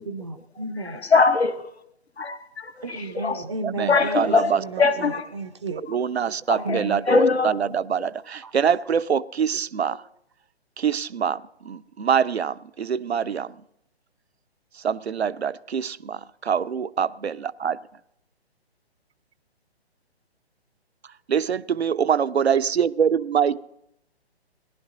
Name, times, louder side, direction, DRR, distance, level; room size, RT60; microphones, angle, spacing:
voice 1, 0.0-1.0 2.8-5.8 6.3-7.0 8.4-8.6, right 3 dB, 30° right, 12 dB, 0.5 m, -33 dB
voice 2, 0.8-1.7 2.2-3.4 3.9-5.3 6.5-7.5 8.0-8.1, left 4 dB, 75° left, 7 dB, 0.9 m, -22 dB
voice 3, 3.6-4.6 5.9-10.0 10.8-13.6 14.8-17.8 21.3-23.6, right 7 dB, 75° right, 16 dB, 0.6 m, -24 dB
18.0 x 11.5 x 3.9 m, 0.78 s
figure-of-eight pair, 135°, 32 cm